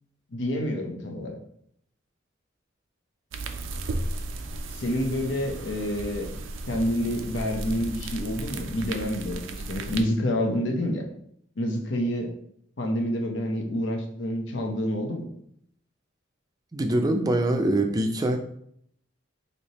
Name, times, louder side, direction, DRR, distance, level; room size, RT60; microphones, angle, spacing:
voice 1, 0.3-1.4 4.7-6.3 6.7-11.0 11.6-12.3 12.8-15.3, equal, 70° left, 3 dB, 0.7 m, -28 dB
sound 1, 3.3-10.0, right 2 dB, 85° right, 0.4 m, -35 dB
voice 2, 16.7-18.4, right 1 dB, 20° right, 4 dB, 0.4 m, -24 dB
3.3 x 2.7 x 4.0 m, 0.69 s
head